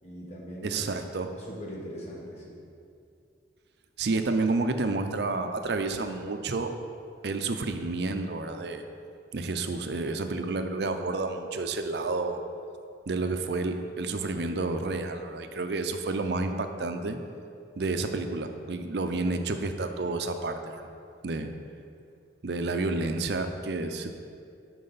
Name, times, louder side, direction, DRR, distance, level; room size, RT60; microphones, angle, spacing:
voice 1, 0.0-0.8 1.3-2.6, equal, 35° left, -4 dB, 1.5 m, -41 dB
voice 2, 0.6-1.3 4.0-6.7 7.2-8.8 9.3-12.4 13.1-17.2 17.8-20.9 21.2-21.5 22.4-24.2, right 3 dB, 60° right, 7 dB, 0.5 m, -30 dB
12.0 x 4.7 x 4.0 m, 2.4 s
head